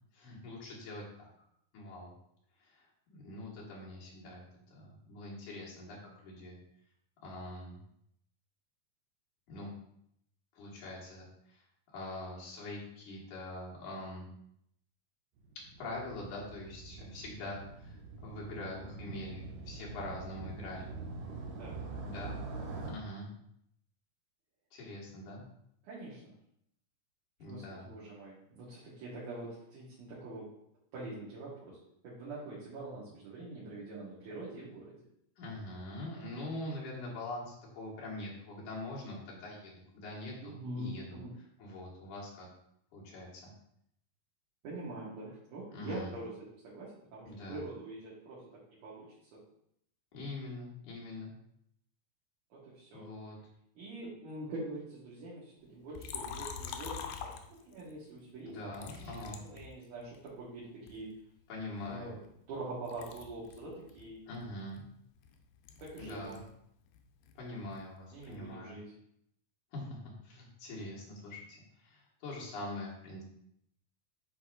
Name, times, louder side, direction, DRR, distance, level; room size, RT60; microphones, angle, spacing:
voice 1, 0.1-1.3 1.7-2.1 2.6-4.4 4.7-6.0 6.2-6.6 7.2-7.8 9.5-9.7 10.5-11.6 11.9-14.3 15.6-20.9 22.0-22.4 22.8-23.3 24.7-25.4 27.4-27.9 35.4-41.2 41.6-42.5 42.9-43.5 45.7-46.1 47.3-47.6 50.1-51.3 52.9-53.4 58.5-59.4 61.5-62.1 64.3-64.8 66.0-66.4 67.4-68.8 69.7-70.0 70.2-71.4 71.8-73.2, left 2 dB, 60° left, -5 dB, 3.0 m, -43 dB
Motorcycle, 15.4-22.9, right 3 dB, 80° right, 2.9 m, -44 dB
voice 2, 25.8-26.3 27.4-30.5 30.9-31.8 32.0-34.9 40.4-41.3 44.6-46.3 46.6-48.4 48.8-49.4 52.5-53.1 53.8-61.1 61.9-62.2 62.5-64.2 65.8-66.4 68.1-68.9, right 2 dB, 60° right, -8 dB, 2.7 m, -44 dB
Liquid, 55.9-57.9 58.7-60.3 60.9-62.6 62.9-66.6 66.8-68.5, left 7 dB, 85° left, 2.4 m, -46 dB
10.5 x 4.1 x 2.5 m, 0.74 s
omnidirectional pair, 4.3 m